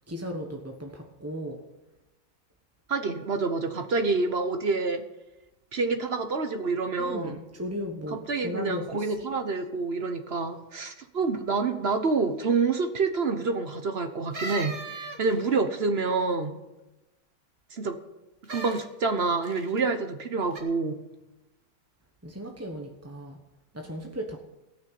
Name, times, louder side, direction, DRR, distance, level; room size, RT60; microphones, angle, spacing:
voice 1, 0.1-1.6 7.0-9.1 22.2-23.4 23.7-24.4, equal, 10° right, 2 dB, 0.8 m, -36 dB
voice 2, 2.9-5.0 5.7-7.4 8.3-16.6 17.7-18.0 18.4-21.0, right 4 dB, 50° right, 7 dB, 0.8 m, -27 dB
sound 1, 14.3-15.6 18.4-18.8 19.4-19.8 20.5-20.6, right 2 dB, 30° right, 2.0 m, -37 dB
17.0 x 6.3 x 9.2 m, 1.0 s
omnidirectional pair, 2.2 m